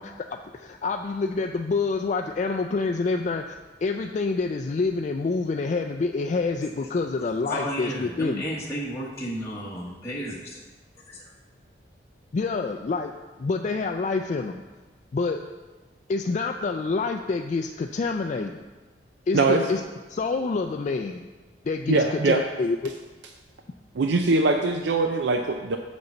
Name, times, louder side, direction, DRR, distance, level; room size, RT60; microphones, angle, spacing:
voice 1, 0.0-8.4 12.3-13.1 13.4-14.6 15.1-15.4 16.1-18.6 19.3-19.8 20.1-21.3 21.7-22.9, left 4 dB, 45° left, 4 dB, 0.3 m, -27 dB
voice 2, 7.4-10.6 11.1-11.2, equal, 15° left, -6 dB, 1.1 m, -33 dB
voice 3, 19.3-19.6 21.9-22.4 24.0-25.8, right 3 dB, 90° right, 5 dB, 0.5 m, -22 dB
6.6 x 5.3 x 7.0 m, 1.3 s
head